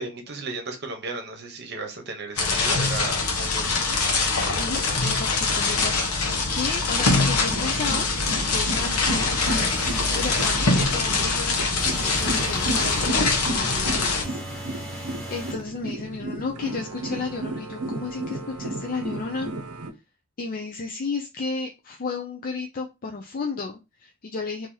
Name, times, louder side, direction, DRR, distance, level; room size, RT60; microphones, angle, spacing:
voice 1, 0.0-3.9 10.1-10.4, right 3 dB, 50° right, 5 dB, 0.9 m, -35 dB
sound 1, 2.4-14.2, left 3 dB, 90° left, 0.9 m, -23 dB
voice 2, 4.5-8.1 8.5-19.5 20.4-24.7, left 4 dB, 40° left, 1 dB, 0.4 m, -33 dB
sound 2, 7.0-19.9, right 1 dB, 85° right, 0.7 m, -34 dB
sound 3, 9.4-10.7 11.8-13.2 14.2-15.7, equal, ahead, 1.1 m, -37 dB
2.9 x 2.7 x 3.7 m, 0.26 s
head